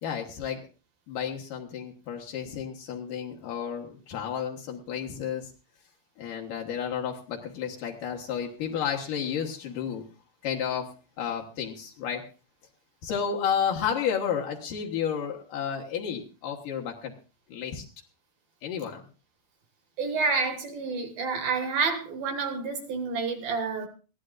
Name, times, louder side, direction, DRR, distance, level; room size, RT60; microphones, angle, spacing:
voice 1, 0.0-0.6 1.1-5.5 6.2-10.0 10.4-10.9 11.2-12.2 13.0-17.1 17.5-17.9 18.6-19.0, left 8 dB, 80° left, 0 dB, 1.8 m, -31 dB
voice 2, 20.0-23.9, right 4 dB, 60° right, 5 dB, 2.6 m, -29 dB
21.0 x 15.5 x 2.5 m, 0.35 s
omnidirectional pair, 6.0 m